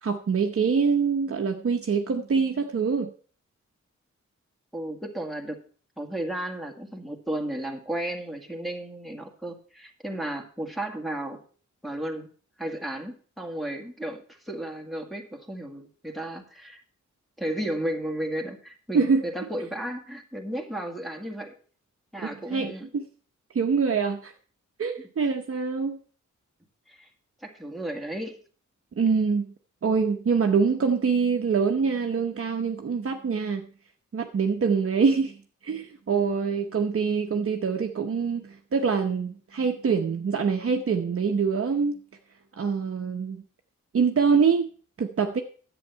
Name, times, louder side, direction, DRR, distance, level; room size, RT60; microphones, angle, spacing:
voice 1, 0.0-3.1 18.9-19.2 22.5-23.0 23.5-24.3 24.8-26.0 29.0-29.5 29.8-33.7 34.1-35.4 35.6-42.0 42.6-43.4 43.9-44.7 45.0-45.4, right 5 dB, 45° right, 0.9 m, -24 dB
voice 2, 4.7-5.6 6.0-11.4 11.8-12.3 12.6-16.8 17.4-21.6 22.1-22.9 26.9-27.1 27.4-28.4, right 1 dB, ahead, 1.7 m, -34 dB
11.0 x 8.1 x 5.6 m
wide cardioid pair, 140°, 30 cm